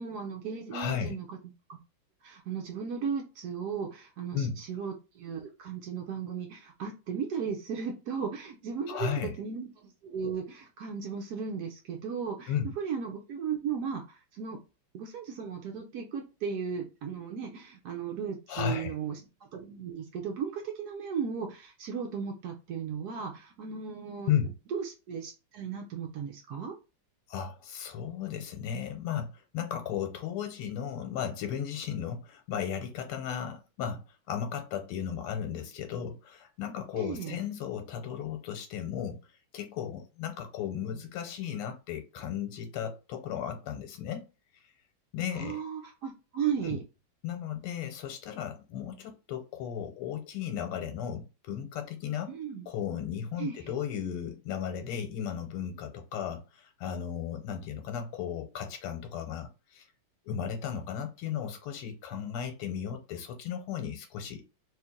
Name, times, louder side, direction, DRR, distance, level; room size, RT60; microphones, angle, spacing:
voice 1, 0.0-1.4 1.7-1.8 2.2-14.6 14.9-19.2 19.5-24.3 24.7-26.7 36.9-37.4 45.3-46.8 52.3-52.7 53.4-53.6, right 6 dB, 75° right, 0.9 m, -36 dB
voice 2, 0.7-1.2 4.3-4.6 8.9-9.3 12.5-12.7 18.5-18.9 24.3-24.5 27.3-39.2 39.5-44.3 45.1-45.6 46.6-46.8 47.2-52.3 52.7-59.8 60.2-64.4, left 8 dB, 85° left, 1.6 m, -35 dB
3.2 x 2.9 x 3.6 m
omnidirectional pair, 2.4 m